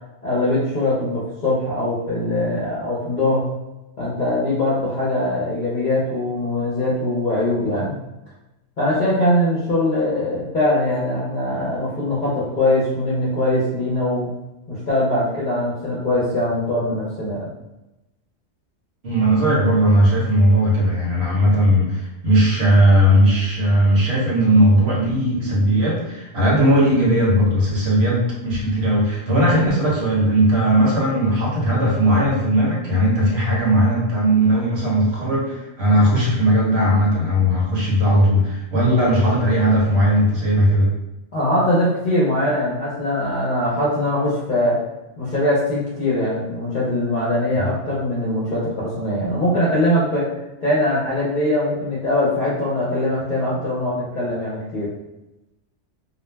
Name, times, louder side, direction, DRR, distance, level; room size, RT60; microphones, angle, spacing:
voice 1, 0.2-3.4 4.0-8.0 8.8-14.3 14.7-17.5 41.3-44.8 45.2-50.3 50.6-54.9, left 1 dB, 50° left, -8 dB, 0.7 m, -21 dB
voice 2, 19.0-40.9 47.6-47.7, equal, 65° right, -4 dB, 1.0 m, -17 dB
2.5 x 2.1 x 3.2 m, 0.98 s
omnidirectional pair, 1.2 m